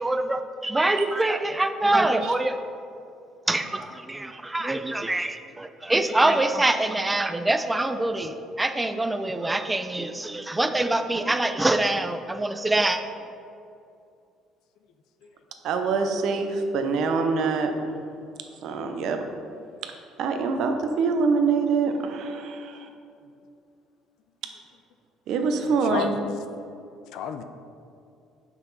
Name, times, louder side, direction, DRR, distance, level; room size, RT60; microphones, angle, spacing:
voice 1, 0.0-2.6 3.5-13.0, right 2 dB, 10° right, 8 dB, 0.4 m, -25 dB
voice 2, 15.6-17.7 18.6-19.2 19.8-19.9 20.2-22.9 25.3-26.1, right 4 dB, 65° right, 6 dB, 0.7 m, -25 dB
voice 3, 25.6-26.3 27.1-27.4, left 6 dB, 75° left, 8 dB, 0.4 m, -32 dB
6.9 x 5.7 x 4.1 m, 2.5 s
cardioid pair, 135°, 0 cm